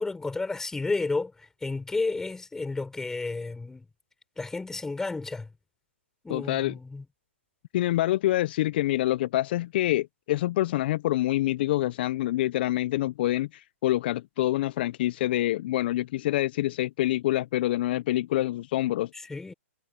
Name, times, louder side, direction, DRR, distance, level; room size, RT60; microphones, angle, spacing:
voice 1, 0.0-3.9 4.4-5.5 6.2-7.0 19.1-19.5, left 3 dB, 5° left, 6.6 m, -32 dB
voice 2, 6.3-6.7 7.7-19.1, left 15 dB, 45° left, 0.8 m, -26 dB
hypercardioid pair, 130°, 7 cm